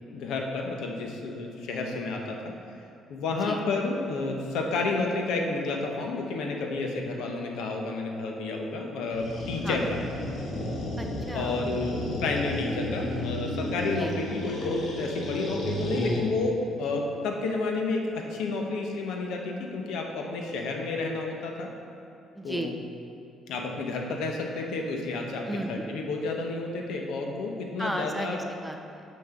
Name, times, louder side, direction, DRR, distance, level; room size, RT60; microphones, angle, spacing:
voice 1, 0.1-2.5 3.1-10.0 11.3-21.7 22.4-22.7 23.5-28.4, left 3 dB, 90° left, 1 dB, 1.0 m, -30 dB
sound 1, 9.1-16.3, left 1 dB, 50° left, 1.3 m, -33 dB
voice 2, 9.6-10.0 11.0-11.6 14.0-14.1 22.3-22.7 25.5-25.8 27.8-29.0, right 1 dB, 5° right, 3 dB, 0.5 m, -34 dB
5.9 x 5.4 x 6.6 m, 2.7 s
cardioid pair, 140°, 0 cm